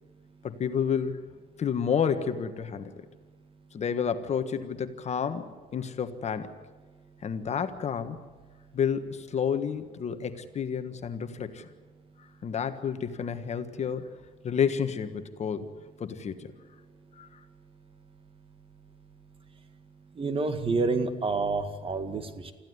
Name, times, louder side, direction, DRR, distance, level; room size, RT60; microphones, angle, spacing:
voice 1, 0.4-1.2 1.6-2.9 3.7-5.5 5.7-6.5 7.2-8.2 8.7-11.7 12.4-14.1 14.4-15.7 16.0-16.5 17.2-17.3, left 7 dB, 40° left, 9 dB, 1.5 m, -30 dB
voice 2, 20.2-22.5, right 3 dB, 30° right, 9 dB, 1.9 m, -28 dB
25.5 x 15.0 x 9.5 m, 1.3 s
cardioid pair, 110°, 17 cm